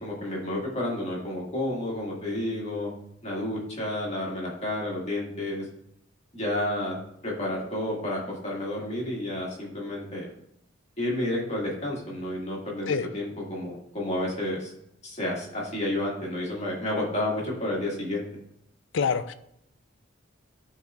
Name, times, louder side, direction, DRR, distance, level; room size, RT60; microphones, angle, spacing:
voice 1, 0.0-2.9 3.2-5.7 6.3-7.0 7.2-10.3 11.0-14.7 15.0-18.3, left 1 dB, 30° left, -4 dB, 1.7 m, -30 dB
voice 2, 18.9-19.3, left 6 dB, 65° left, 11 dB, 0.4 m, -25 dB
11.0 x 3.9 x 2.3 m, 0.74 s
head